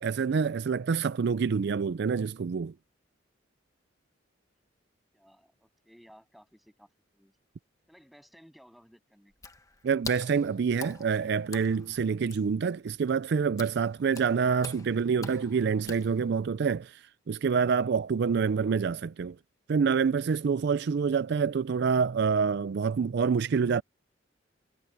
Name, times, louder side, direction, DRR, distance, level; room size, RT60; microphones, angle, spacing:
voice 1, 0.0-2.7 9.8-19.4 19.7-23.8, right 6 dB, 60° right, 0.4 m, -27 dB
voice 2, 5.1-7.3 7.9-9.3 18.4-18.8, equal, ahead, 7.7 m, -58 dB
Water / Splash splatter, 9.3-16.6, left 4 dB, 20° left, 1.3 m, -46 dB
head